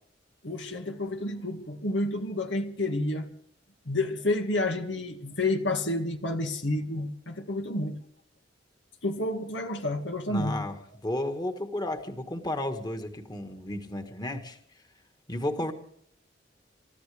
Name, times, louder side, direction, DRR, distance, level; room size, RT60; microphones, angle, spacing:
voice 1, 0.4-3.3 3.9-8.0 9.0-10.7, left 2 dB, 90° left, 2.0 m, -30 dB
voice 2, 10.3-10.7 11.0-14.6 15.3-15.7, left 1 dB, 25° left, 1.6 m, -32 dB
28.5 x 14.0 x 3.4 m
head